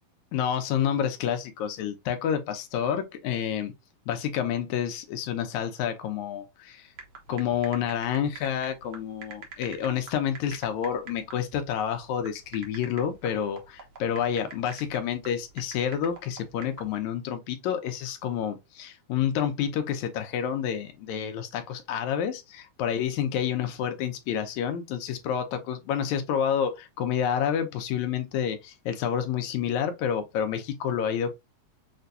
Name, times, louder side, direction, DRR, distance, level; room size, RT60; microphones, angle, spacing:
voice 1, 0.3-3.7 4.1-6.9 7.3-31.3, left 8 dB, 75° left, 2.0 m, -29 dB
sound 1, 7.0-17.0, right 5 dB, 60° right, 1.3 m, -46 dB
6.6 x 2.2 x 2.6 m
omnidirectional pair, 3.6 m